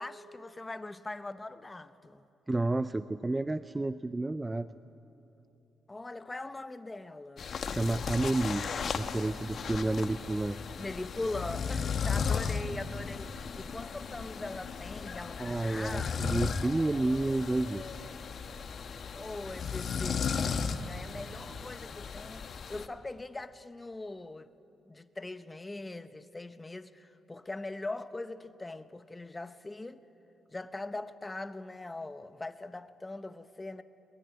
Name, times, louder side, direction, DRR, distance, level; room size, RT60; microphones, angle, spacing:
voice 1, 0.0-2.3 5.9-7.5 10.8-16.1 19.2-24.5 24.8-30.0 30.5-33.8, left 2 dB, 20° left, 1.0 m, -41 dB
voice 2, 2.5-4.7 7.7-10.6 15.4-17.9, right 2 dB, 15° right, 0.5 m, -30 dB
sound 1, 7.4-22.9, left 6 dB, 50° left, 1.1 m, -35 dB
22.0 x 21.0 x 9.7 m
cardioid pair, 90°, 0 cm